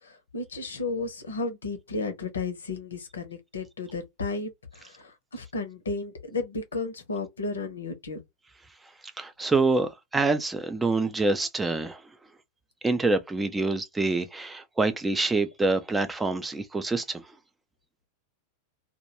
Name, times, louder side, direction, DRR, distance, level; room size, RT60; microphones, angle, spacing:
voice 1, 0.0-8.2, left 3 dB, 70° left, 0.6 m, -33 dB
voice 2, 9.2-12.0 12.8-17.2, right 3 dB, 10° right, 0.3 m, -26 dB
2.2 x 2.1 x 2.8 m
figure-of-eight pair, 90°, 0 cm